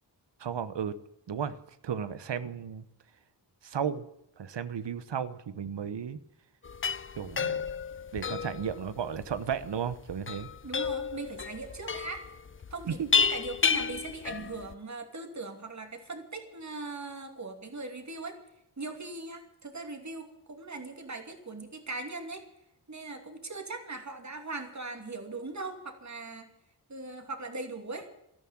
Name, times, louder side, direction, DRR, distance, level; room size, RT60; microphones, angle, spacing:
voice 1, 0.4-0.9 1.3-1.6 1.8-2.8 3.6-4.0 4.4-6.2 7.2-7.6 8.1-10.5 12.9-13.1, right 7 dB, 80° right, 14 dB, 1.0 m, -34 dB
sound 1, 6.6-14.7, left 5 dB, 30° left, 0.5 m, -31 dB
voice 2, 10.6-12.2 12.7-18.4 18.8-22.4 22.9-26.5 26.9-28.1, right 3 dB, 40° right, 5 dB, 2.8 m, -40 dB
13.5 x 12.0 x 8.7 m, 0.81 s
wide cardioid pair, 100°, 42 cm